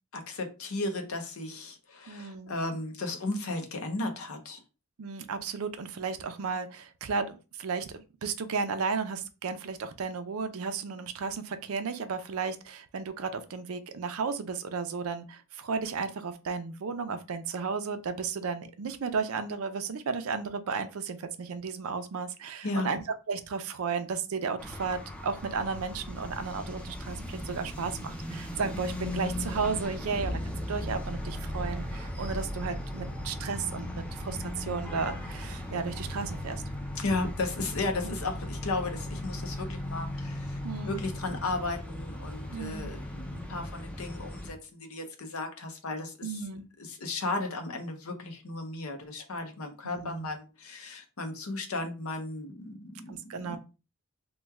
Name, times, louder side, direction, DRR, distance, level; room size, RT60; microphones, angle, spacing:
voice 1, 0.1-4.6 22.6-22.9 37.0-40.6 40.8-46.4 46.8-53.6, left 2 dB, 75° left, 0.7 m, -35 dB
voice 2, 2.1-2.6 5.0-23.0 23.3-30.4 30.7-36.6 38.0-38.1 40.6-41.0 42.5-42.9 46.2-46.6 49.8-50.3 53.1-53.6, right 5 dB, 75° right, 0.5 m, -34 dB
sound 1, 24.6-44.5, left 1 dB, 5° left, 0.4 m, -37 dB
3.1 x 2.2 x 3.4 m
head